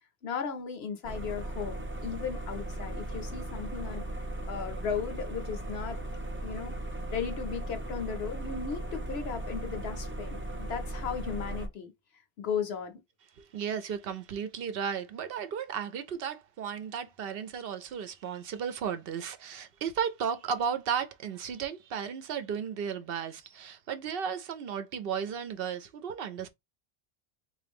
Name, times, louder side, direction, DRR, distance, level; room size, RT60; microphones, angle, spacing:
voice 1, 0.2-4.0 4.5-6.0 6.4-6.8 7.1-11.9 12.4-13.0, left 6 dB, 75° left, 1.0 m, -36 dB
sound 1, 1.0-11.7, right 1 dB, 20° right, 0.4 m, -37 dB
voice 2, 13.4-26.5, right 7 dB, 65° right, 0.8 m, -34 dB
3.7 x 2.6 x 3.5 m
omnidirectional pair, 1.1 m